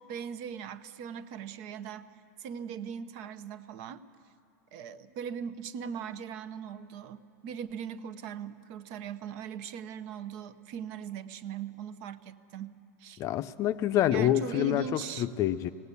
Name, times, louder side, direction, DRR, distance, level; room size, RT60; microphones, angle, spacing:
voice 1, 0.0-2.1 2.4-4.0 4.7-13.2 14.1-15.3, right 8 dB, 55° right, 13 dB, 0.9 m, -40 dB
voice 2, 13.2-15.7, left 12 dB, 40° left, 11 dB, 0.6 m, -27 dB
18.5 x 17.5 x 8.4 m, 2.6 s
supercardioid pair, 135°, 9 cm